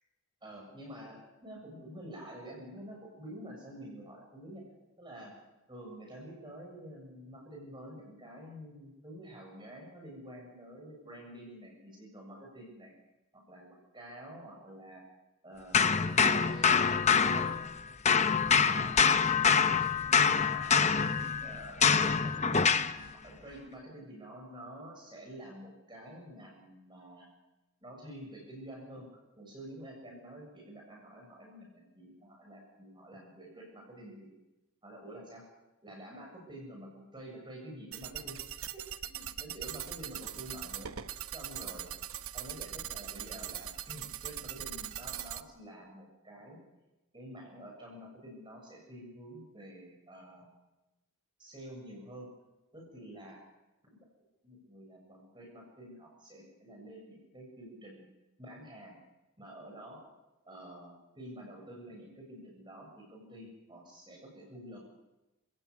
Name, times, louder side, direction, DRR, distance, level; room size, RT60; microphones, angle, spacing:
voice 1, 0.4-4.6 5.0-5.3 5.7-12.9 13.3-15.0 15.4-17.5 18.6-19.0 19.4-19.6 20.1-20.8 21.2-27.3 27.8-29.1 29.4-34.3 34.8-35.4 35.8-38.4 38.7-38.8 39.1-41.9 42.3-46.6 47.1-50.5 51.4-52.3 52.7-53.4 53.8-54.0 54.4-58.0 58.4-59.0 59.4-60.0 60.5-64.8, right 1 dB, 20° right, -1 dB, 7.1 m, -48 dB
sound 1, 15.7-17.8 18.1-23.0, left 6 dB, 30° left, 0.9 m, -25 dB
sound 2, 37.9-45.4, right 10 dB, 75° right, 1.1 m, -41 dB
30.0 x 17.0 x 8.4 m, 1.0 s
head